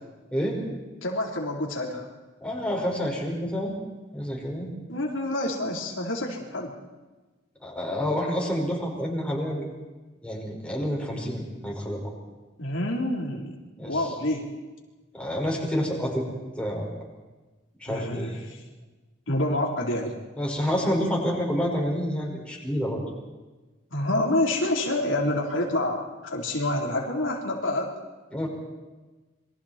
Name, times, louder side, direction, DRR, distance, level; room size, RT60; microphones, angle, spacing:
voice 1, 1.0-2.1 4.9-6.7 12.6-13.5 13.9-14.5 17.9-18.6 19.3-20.2 23.9-27.9, left 1 dB, 90° left, -1 dB, 4.0 m, -27 dB
voice 2, 2.4-3.8 4.1-4.7 7.6-9.7 10.2-12.0 13.8-14.0 15.1-16.3 16.6-16.9 17.8-18.4 20.4-23.0 28.3-28.5, equal, 5° left, -3 dB, 5.7 m, -28 dB
27.5 x 23.5 x 4.5 m, 1.2 s
head